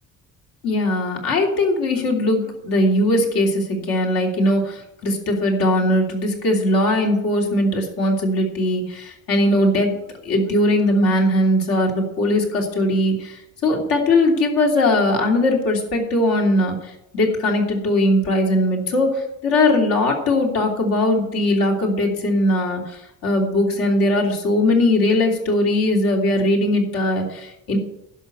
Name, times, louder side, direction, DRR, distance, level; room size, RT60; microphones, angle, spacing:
voice 1, 0.6-10.0 10.2-27.8, left 1 dB, 85° left, 1 dB, 3.1 m, -20 dB
11.5 x 5.7 x 8.3 m, 0.87 s
cardioid pair, 135°, 34 cm